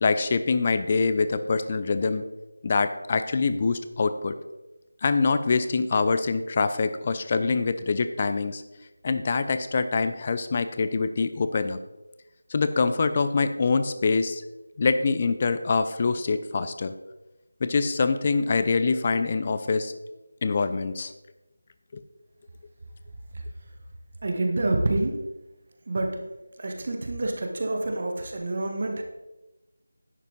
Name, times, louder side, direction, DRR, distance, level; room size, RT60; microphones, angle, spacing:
voice 1, 0.0-2.2 2.6-4.3 5.0-8.6 9.0-11.8 12.5-14.4 14.8-16.9 17.6-19.9 20.4-21.1 21.9-22.0, left 4 dB, 30° left, 11 dB, 0.6 m, -24 dB
voice 2, 24.2-25.3 25.9-26.3 26.6-29.0, right 2 dB, 45° right, 3 dB, 1.6 m, -27 dB
11.0 x 8.4 x 4.0 m, 1.0 s
figure-of-eight pair, 165°, 0 cm